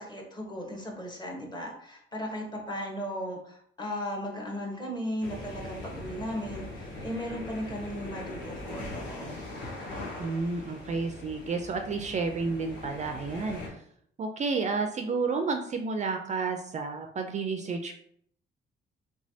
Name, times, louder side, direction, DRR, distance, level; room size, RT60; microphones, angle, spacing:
voice 1, 0.0-9.4, equal, 20° left, 0 dB, 1.0 m, -36 dB
sound 1, 5.2-13.7, left 2 dB, 70° left, 1.1 m, -41 dB
voice 2, 10.2-13.8 14.2-17.9, right 4 dB, 35° right, 4 dB, 0.4 m, -31 dB
3.3 x 3.1 x 2.7 m, 0.66 s
cardioid pair, 90°, 20 cm